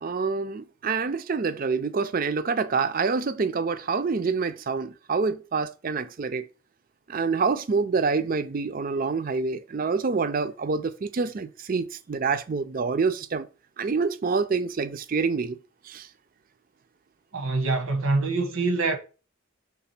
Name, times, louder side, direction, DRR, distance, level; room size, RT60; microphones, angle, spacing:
voice 1, 0.0-6.4 7.1-13.5 13.8-15.6 15.9-16.1, right 4 dB, 40° right, 0.4 m, -27 dB
voice 2, 17.3-19.0, right 3 dB, 85° right, 1.2 m, -25 dB
6.0 x 3.6 x 5.7 m
head